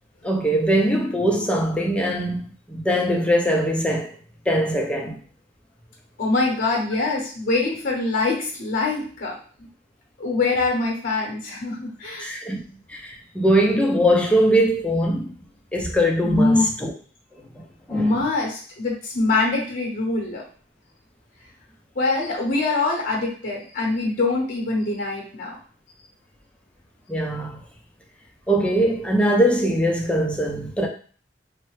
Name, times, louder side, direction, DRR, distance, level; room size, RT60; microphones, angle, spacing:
voice 1, 0.2-4.2 4.5-5.2 12.2-15.4 15.7-16.9 17.3-17.5 17.9-18.2 27.1-27.6 28.5-30.9, equal, 5° left, 0.4 m, -21 dB
voice 2, 6.2-9.4 10.2-12.3 16.2-16.7 17.9-20.4 22.0-25.6, left 3 dB, 50° left, 0.8 m, -23 dB
3.1 x 2.1 x 3.1 m
head